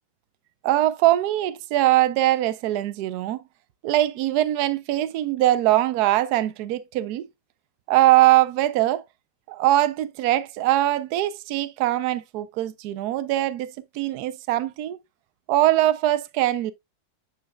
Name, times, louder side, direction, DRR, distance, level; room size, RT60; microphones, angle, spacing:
voice 1, 0.6-3.4 3.8-7.3 7.9-9.0 9.5-15.0 15.5-16.7, right 14 dB, 70° right, 1.0 m, -22 dB
9.9 x 5.5 x 2.2 m
omnidirectional pair, 2.1 m